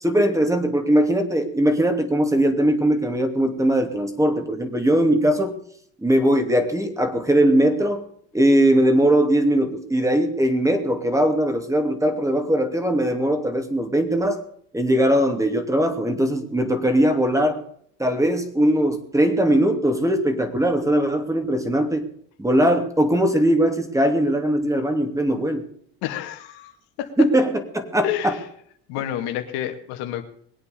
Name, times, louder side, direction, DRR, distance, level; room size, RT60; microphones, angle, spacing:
voice 1, 0.0-5.5 6.0-8.0 8.3-14.4 14.7-17.6 18.0-22.0 22.4-25.7 27.2-28.3, right 1 dB, 10° right, 7 dB, 2.6 m, -20 dB
voice 2, 26.0-26.7 27.0-27.3 28.0-28.4 28.9-30.2, left 11 dB, 80° left, 5 dB, 2.3 m, -29 dB
21.5 x 8.6 x 6.9 m, 0.64 s
supercardioid pair, 100°, 38 cm